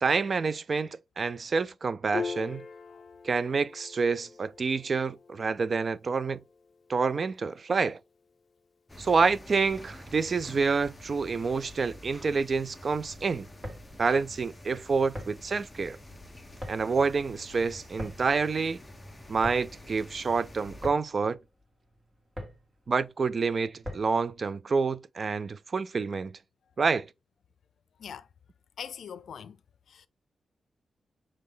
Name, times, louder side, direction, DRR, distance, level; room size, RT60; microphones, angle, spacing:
voice 1, 0.0-2.6 3.2-6.4 6.9-8.0 9.0-13.5 14.0-16.0 16.7-18.8 19.3-21.4 22.9-26.3 26.8-27.1, right 4 dB, 40° right, 0.3 m, -28 dB
Piano, 2.1-8.8, left 5 dB, 40° left, 0.7 m, -42 dB
sound 1, 8.9-20.9, left 1 dB, 10° left, 1.0 m, -48 dB
sound 2, 13.6-24.3, equal, 20° right, 2.5 m, -44 dB
voice 2, 28.8-29.6 29.9-30.1, left 7 dB, 75° left, 0.5 m, -41 dB
7.3 x 3.5 x 3.9 m
wide cardioid pair, 170°, 0 cm